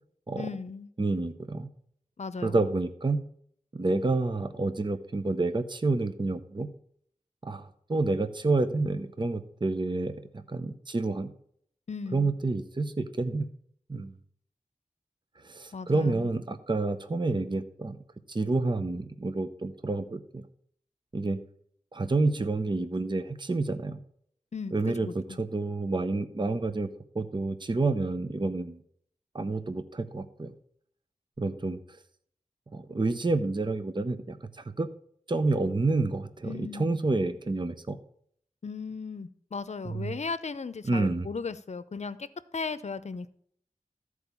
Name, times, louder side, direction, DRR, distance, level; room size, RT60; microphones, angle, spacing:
voice 1, 0.4-0.9 2.2-2.6 11.9-12.3 15.7-16.3 24.5-25.4 36.4-37.0 38.6-42.2 42.5-43.3, left 4 dB, 60° left, 0.7 m, -36 dB
voice 2, 1.0-1.7 2.4-3.2 3.7-6.7 7.4-11.3 12.1-13.5 13.9-14.1 15.4-18.0 18.3-20.5 21.1-21.4 21.9-24.0 24.7-28.8 29.3-30.5 31.4-32.0 32.7-34.9 35.3-38.0 39.8-40.1 40.8-41.3, right 3 dB, 35° right, 0.8 m, -29 dB
14.0 x 4.8 x 6.9 m
wide cardioid pair, 75°, 13 cm